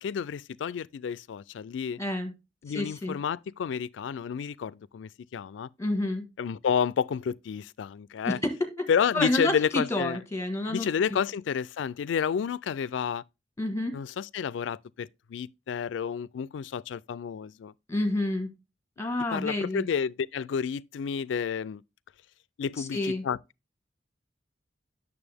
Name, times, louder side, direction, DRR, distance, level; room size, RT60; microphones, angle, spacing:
voice 1, 0.0-2.0 2.6-5.7 6.4-8.4 8.9-10.2 10.7-13.2 13.9-17.7 19.3-21.8 22.6-23.4, left 7 dB, 80° left, 0.3 m, -30 dB
voice 2, 2.0-2.3 2.7-3.2 5.8-6.3 8.2-8.9 9.1-10.9 13.6-14.0 17.9-18.5 19.0-19.9 22.8-23.2, left 1 dB, 15° left, 1.4 m, -29 dB
8.9 x 6.7 x 3.4 m
head